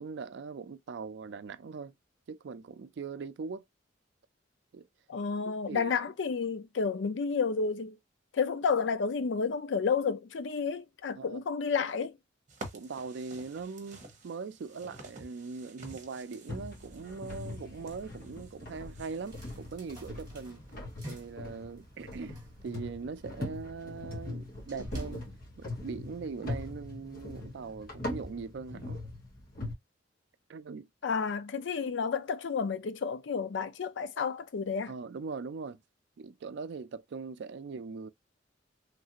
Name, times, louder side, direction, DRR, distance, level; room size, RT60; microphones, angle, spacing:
voice 1, 0.0-1.9 2.3-3.6 4.7-4.9 5.7-5.9 11.2-11.4 12.7-20.6 21.0-25.2 25.6-29.0 30.5-30.9 34.9-35.8 36.2-38.1, right 5 dB, 65° right, 0.4 m, -41 dB
voice 2, 5.1-8.0 8.3-12.2 31.0-34.9, left 5 dB, 70° left, 0.4 m, -31 dB
sound 1, 12.5-19.6, right 2 dB, 40° right, 0.9 m, -50 dB
sound 2, 16.5-29.7, left 1 dB, 50° left, 1.2 m, -41 dB
sound 3, 19.2-25.3, right 1 dB, 20° right, 1.4 m, -51 dB
3.2 x 2.4 x 2.8 m
head